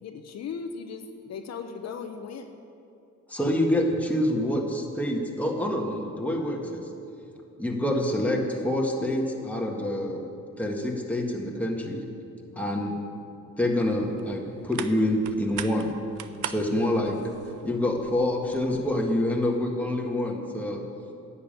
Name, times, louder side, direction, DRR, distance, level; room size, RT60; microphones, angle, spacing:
voice 1, 0.0-2.5 12.5-12.9 17.4-17.8, left 6 dB, 60° left, 6 dB, 0.8 m, -38 dB
voice 2, 3.3-6.8 7.6-10.2 10.6-12.0 12.6-12.9 13.6-15.9 16.5-17.2 17.6-20.8, left 1 dB, 5° left, 0 dB, 1.7 m, -26 dB
sound 1, 13.8-19.0, right 10 dB, 90° right, 0.6 m, -41 dB
10.5 x 7.2 x 9.0 m, 2.7 s
cardioid pair, 90°, 30 cm